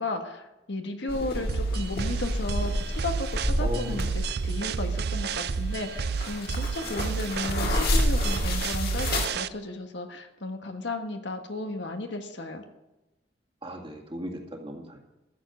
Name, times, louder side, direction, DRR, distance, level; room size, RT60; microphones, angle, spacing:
voice 1, 0.0-12.6, left 2 dB, 70° left, 5 dB, 1.4 m, -34 dB
sound 1, 1.1-9.3, left 1 dB, 55° left, 2.3 m, -30 dB
sound 2, 1.5-9.5, right 5 dB, 55° right, 0.4 m, -31 dB
voice 2, 3.6-4.1 6.8-7.1 13.6-15.0, equal, 25° right, 1 dB, 2.1 m, -37 dB
13.5 x 7.2 x 7.9 m, 0.99 s
head